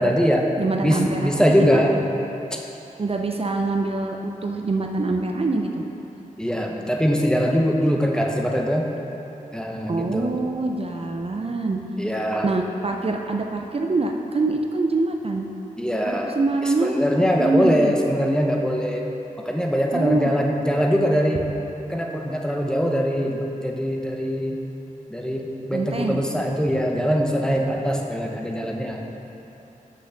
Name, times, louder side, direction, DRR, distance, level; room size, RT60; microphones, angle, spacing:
voice 1, 0.0-0.5 0.8-2.0 2.5-2.6 6.4-8.9 9.5-10.3 12.0-12.5 15.8-16.3 16.8-19.0 19.4-21.5 21.9-24.6 25.1-29.0, equal, 5° left, 0 dB, 0.8 m, -22 dB
voice 2, 0.6-1.8 3.0-5.8 9.9-11.8 12.4-15.5 16.2-17.0 17.4-17.9 19.9-20.3 25.7-26.2, right 3 dB, 45° right, 2 dB, 0.5 m, -24 dB
6.4 x 5.6 x 6.4 m, 3.0 s
wide cardioid pair, 75°, 14 cm